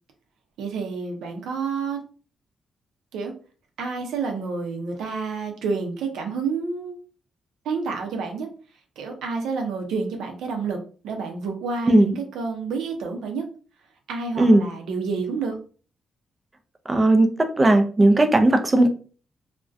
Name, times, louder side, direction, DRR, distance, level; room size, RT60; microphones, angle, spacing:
voice 1, 0.6-2.0 3.1-3.3 3.8-7.0 7.6-8.5 9.0-10.8 11.0-13.4 14.1-15.6, right 4 dB, 90° right, 3 dB, 0.5 m, -29 dB
voice 2, 16.9-17.3 17.6-18.9, right 1 dB, 25° right, 6 dB, 0.4 m, -16 dB
2.3 x 2.1 x 2.5 m, 0.40 s
cardioid pair, 80°, 0 cm